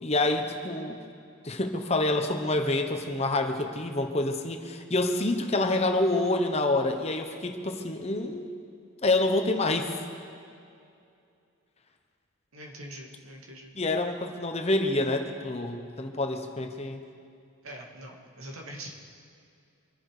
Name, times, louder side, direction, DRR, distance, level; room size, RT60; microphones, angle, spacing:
voice 1, 0.0-1.0 1.4-8.5 9.0-9.9 13.7-17.0, left 2 dB, 30° left, 5 dB, 1.1 m, -27 dB
voice 2, 12.5-13.7 17.6-19.0, right 1 dB, 85° right, 0 dB, 2.4 m, -43 dB
25.0 x 10.5 x 5.0 m, 2.5 s
head